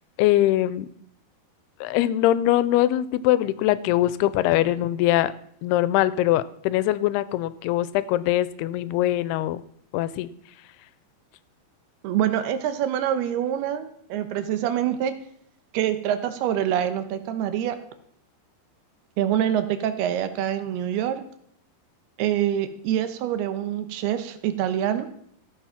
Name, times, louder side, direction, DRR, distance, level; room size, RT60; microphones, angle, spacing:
voice 1, 0.2-0.9 1.8-5.3 5.6-9.6 9.9-10.3, left 14 dB, 85° left, 16 dB, 2.5 m, -22 dB
voice 2, 12.0-15.1 15.7-17.8 19.2-21.2 22.2-25.1, right 10 dB, 80° right, 10 dB, 2.9 m, -25 dB
14.5 x 7.6 x 5.7 m, 0.68 s
omnidirectional pair, 4.6 m